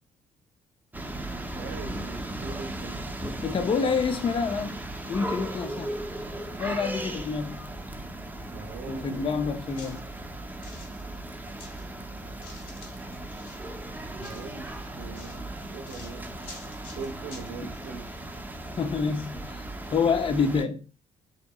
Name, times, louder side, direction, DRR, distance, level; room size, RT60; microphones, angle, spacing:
sound 1, 0.9-20.6, right 1 dB, 10° right, 0.7 m, -37 dB
voice 1, 1.4-3.1 8.5-9.3 14.1-16.5 16.9-18.1, right 4 dB, 60° right, 0.8 m, -41 dB
voice 2, 3.4-4.8 5.1-5.9 6.6-7.7 8.9-10.0 18.8-19.5 19.9-20.8, left 5 dB, 30° left, 0.5 m, -27 dB
sound 2, 9.1-9.2 9.6-11.9 12.2-13.7 14.2-17.9 18.3-18.4, left 3 dB, 60° left, 1.7 m, -49 dB
3.5 x 2.8 x 2.3 m
hypercardioid pair, 45°, 17 cm